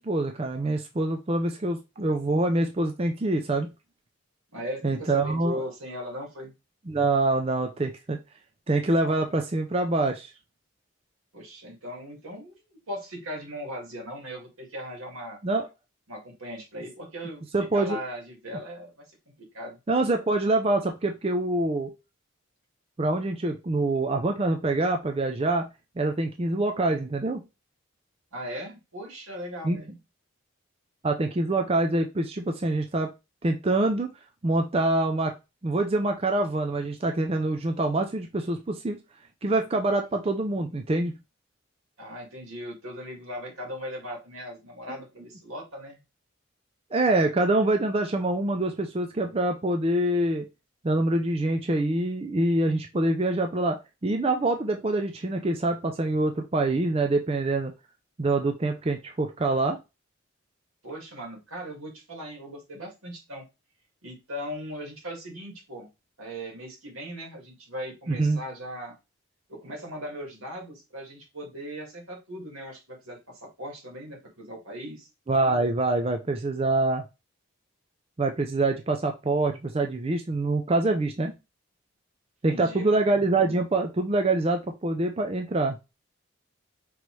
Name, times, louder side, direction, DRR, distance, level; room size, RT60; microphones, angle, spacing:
voice 1, 0.0-3.7 4.8-5.6 6.9-8.2 8.7-10.3 15.4-15.7 17.5-18.0 19.9-21.9 23.0-25.7 26.0-27.4 29.6-29.8 31.0-33.1 33.4-34.1 34.4-35.3 35.6-39.0 39.4-41.2 46.9-50.5 50.8-57.7 58.2-59.8 68.1-68.4 75.3-77.0 78.2-81.3 82.4-85.8, right 2 dB, 30° right, 4 dB, 0.4 m, -25 dB
voice 2, 4.5-6.5 11.3-15.4 16.1-17.4 17.7-19.1 19.5-19.8 28.3-30.0 42.0-46.0 60.8-63.5 64.0-65.9 66.2-69.0 69.5-75.1 82.4-83.1, equal, 90° right, 0 dB, 2.0 m, -38 dB
5.3 x 3.1 x 3.1 m, 0.25 s
head